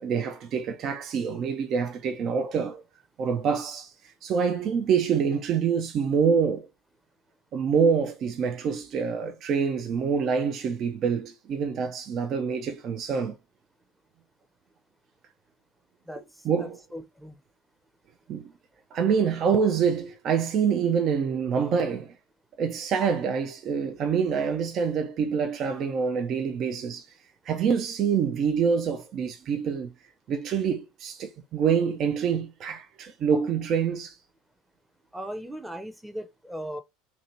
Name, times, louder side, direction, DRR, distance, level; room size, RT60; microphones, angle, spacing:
voice 1, 0.0-2.8 3.2-6.7 7.5-13.4 16.4-16.8 18.3-18.5 18.9-22.1 22.6-27.1 27.5-29.9 30.3-34.2, right 6 dB, 45° right, 0.5 m, -26 dB
voice 2, 16.6-17.4 35.1-36.8, equal, 5° right, 0.7 m, -38 dB
2.8 x 2.7 x 4.2 m
figure-of-eight pair, 75°, 0 cm